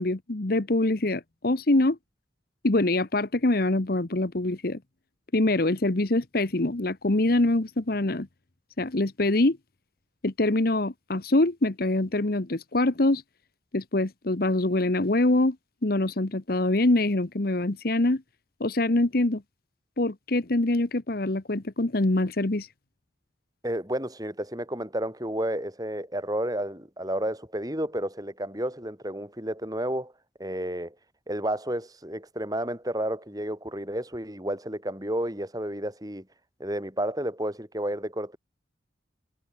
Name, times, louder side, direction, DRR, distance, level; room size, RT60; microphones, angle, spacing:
voice 1, 0.0-2.0 2.6-4.8 5.3-8.3 8.8-9.6 10.2-13.2 13.7-15.6 15.8-18.2 18.6-19.4 20.0-22.7, left 2 dB, 55° left, 1.2 m, -24 dB
voice 2, 23.6-30.1 30.4-30.9 31.3-36.2 36.6-38.4, right 1 dB, 20° right, 6.6 m, -31 dB
head